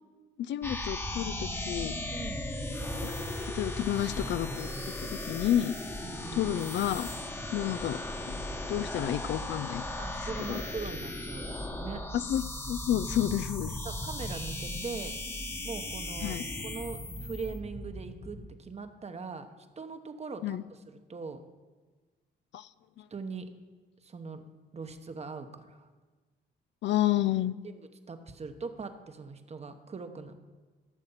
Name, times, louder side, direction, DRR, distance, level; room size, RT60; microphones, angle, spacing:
voice 1, 0.4-1.9 3.0-3.1 3.5-4.7 5.0-5.7 6.3-7.1 7.5-8.0 8.3-8.4 8.7-9.8 10.5-10.6 12.1-13.7 16.2-16.4 20.4-20.6 22.5-22.7 26.8-27.5, left 12 dB, 65° left, 16 dB, 0.4 m, -30 dB
sound 1, 0.6-18.5, left 1 dB, 10° left, 1.1 m, -37 dB
voice 2, 2.1-2.5 6.0-6.5 10.0-12.0 13.8-15.1 15.6-19.5 19.8-21.4 23.1-23.5 24.0-24.4 24.7-25.9 27.6-30.4, right 4 dB, 30° right, 8 dB, 1.0 m, -41 dB
13.0 x 6.6 x 5.7 m, 1.3 s
cardioid pair, 90°, 20 cm